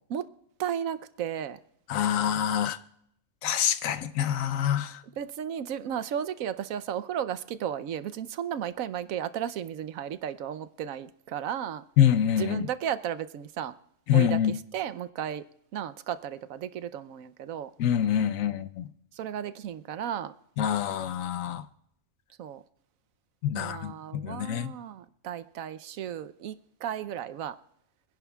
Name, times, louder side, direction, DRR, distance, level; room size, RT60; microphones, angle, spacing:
voice 1, 0.6-1.6 5.2-11.8 12.4-13.7 14.1-15.4 15.7-17.7 19.1-20.3 22.4-22.6 23.5-27.6, right 9 dB, 85° right, 1.1 m, -34 dB
voice 2, 1.9-2.8 3.4-5.0 12.0-12.7 14.1-14.5 17.8-18.9 20.6-21.6 23.4-24.7, left 10 dB, 75° left, 1.1 m, -26 dB
25.5 x 10.5 x 2.3 m
omnidirectional pair, 1.4 m